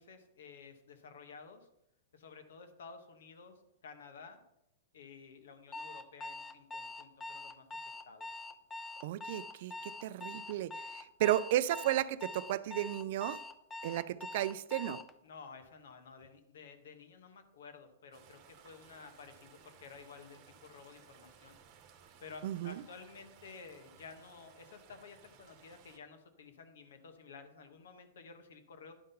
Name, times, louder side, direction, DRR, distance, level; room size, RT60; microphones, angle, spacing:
voice 1, 0.0-1.7 2.1-4.4 4.9-7.7 8.0-8.3 15.2-21.6 22.2-28.9, left 5 dB, 80° left, 1.3 m, -53 dB
Alarm, 5.7-15.1, left 2 dB, 15° left, 0.4 m, -44 dB
voice 2, 9.0-13.4 13.8-15.0 22.4-22.7, right 13 dB, 55° right, 0.4 m, -34 dB
sound 1, 18.1-26.0, right 7 dB, 40° right, 1.0 m, -60 dB
10.5 x 3.8 x 5.6 m
hypercardioid pair, 145°, 0 cm